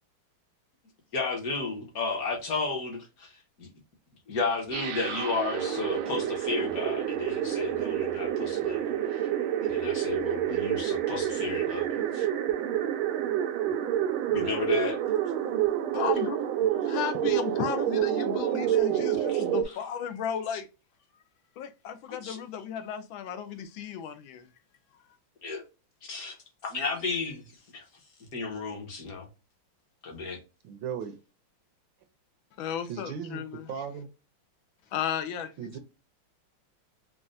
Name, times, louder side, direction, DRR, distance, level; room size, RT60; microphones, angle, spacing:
voice 1, 1.1-3.7 4.3-9.2 9.6-12.3 14.3-15.0 19.3-19.4 22.1-22.4 25.4-25.6 26.1-26.4 26.6-27.4 27.7-27.8 28.3-29.3 30.0-30.4, left 4 dB, 50° left, 1.5 m, -33 dB
sound 1, 4.7-19.6, right 11 dB, 90° right, 1.5 m, -28 dB
voice 2, 15.9-16.5 16.8-20.7 21.6-24.5 32.6-33.7 34.9-35.5, left 8 dB, 75° left, 1.4 m, -34 dB
voice 3, 30.6-31.2 32.9-33.4 33.7-34.1 35.6-35.8, right 7 dB, 75° right, 1.2 m, -36 dB
5.3 x 2.4 x 2.6 m
omnidirectional pair, 2.2 m